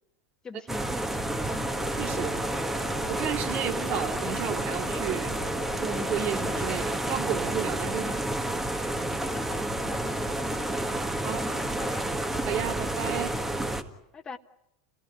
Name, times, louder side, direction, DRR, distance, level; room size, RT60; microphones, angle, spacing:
voice 1, 0.4-1.7 9.2-10.9 11.2-12.1 14.1-14.4, left 5 dB, 25° left, 7 dB, 1.6 m, -43 dB
sound 1, 0.7-13.8, right 1 dB, 10° right, 1.9 m, -30 dB
sound 2, 1.7-7.0, left 10 dB, 70° left, 2.5 m, -44 dB
voice 2, 2.0-2.4 3.1-5.3 5.8-8.2 11.2-11.4 12.5-13.3, right 9 dB, 50° right, 6 dB, 2.6 m, -32 dB
29.0 x 18.0 x 9.9 m, 0.87 s
hypercardioid pair, 100°, 3 cm